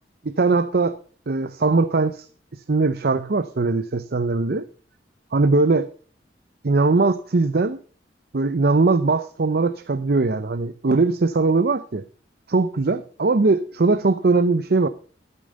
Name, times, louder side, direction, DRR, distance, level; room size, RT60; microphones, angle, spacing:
voice 1, 0.2-1.0 1.3-2.3 2.5-4.7 5.3-5.9 6.6-7.8 8.3-12.0 12.5-14.9, right 3 dB, 60° right, 0.6 m, -20 dB
12.5 x 8.7 x 5.3 m
head